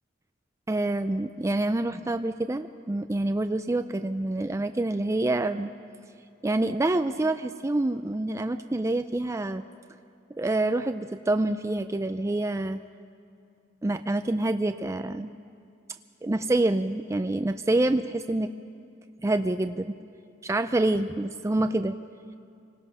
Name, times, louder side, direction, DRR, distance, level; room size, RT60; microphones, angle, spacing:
voice 1, 0.7-5.7 6.4-9.6 10.4-12.8 13.8-15.3 16.2-18.5 19.2-19.9 20.4-22.0, right 2 dB, 15° right, 9 dB, 0.4 m, -27 dB
26.5 x 19.0 x 5.6 m, 2.4 s
head